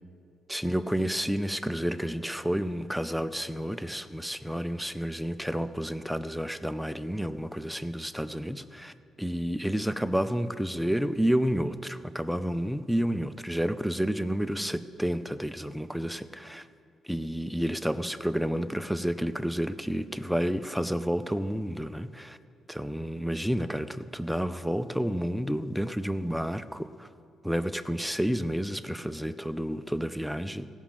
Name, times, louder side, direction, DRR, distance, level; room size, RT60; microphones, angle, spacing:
voice 1, 0.5-8.9 9.2-16.7 17.0-22.4 22.7-27.1 27.4-30.7, equal, ahead, 11 dB, 0.5 m, -30 dB
16.0 x 6.1 x 7.3 m, 2.5 s
cardioid pair, 90°, 0 cm